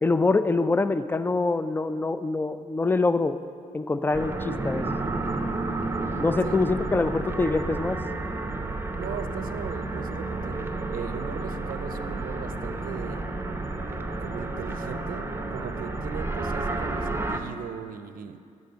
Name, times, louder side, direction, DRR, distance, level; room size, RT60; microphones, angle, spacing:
voice 1, 0.0-3.4 3.7-4.9 6.2-8.0, left 3 dB, 10° left, 13 dB, 0.4 m, -25 dB
sound 1, 4.1-17.4, right 2 dB, 15° right, 0.8 m, -31 dB
voice 2, 9.0-13.3 14.2-18.4, right 8 dB, 55° right, 11 dB, 0.6 m, -38 dB
11.5 x 4.1 x 6.5 m, 2.3 s
hypercardioid pair, 45°, 17 cm